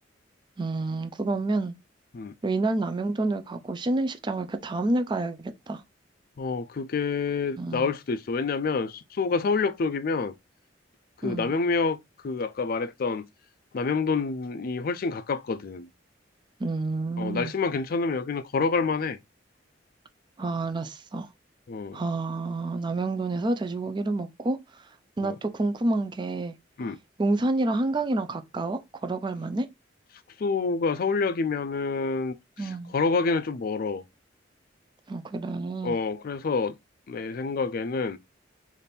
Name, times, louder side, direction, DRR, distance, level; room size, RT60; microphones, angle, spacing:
voice 1, 0.6-1.7 2.4-5.8 7.6-7.9 11.2-11.5 16.6-17.5 20.4-21.3 21.9-24.8 25.2-26.5 27.2-29.7 32.6-32.9 35.1-36.0, right 2 dB, 25° right, 0.4 m, -28 dB
voice 2, 6.4-10.3 11.2-12.0 12.2-13.3 13.7-15.9 17.2-19.2 21.7-22.0 25.2-25.4 26.8-27.0 30.4-34.0 35.8-36.7 37.1-38.2, left 4 dB, 50° left, 0.4 m, -27 dB
3.4 x 2.5 x 4.1 m
head